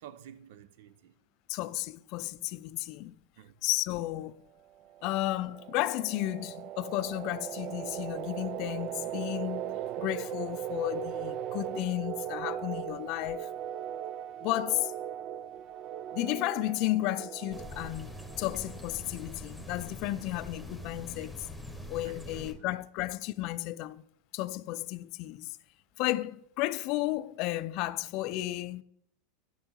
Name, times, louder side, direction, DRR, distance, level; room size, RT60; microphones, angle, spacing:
voice 1, 0.0-1.1 3.4-3.5 22.0-22.6, right 10 dB, 70° right, 0.7 m, -51 dB
voice 2, 1.5-3.1 3.6-4.4 5.0-13.5 14.4-14.9 16.1-21.5 21.9-24.0 24.3-25.6 26.0-28.8, left 17 dB, 50° left, 0.4 m, -33 dB
sound 1, 4.8-19.3, right 11 dB, 45° right, 0.3 m, -39 dB
sound 2, 17.5-22.5, left 1 dB, ahead, 1.4 m, -44 dB
11.0 x 7.0 x 3.7 m
supercardioid pair, 135°, 0 cm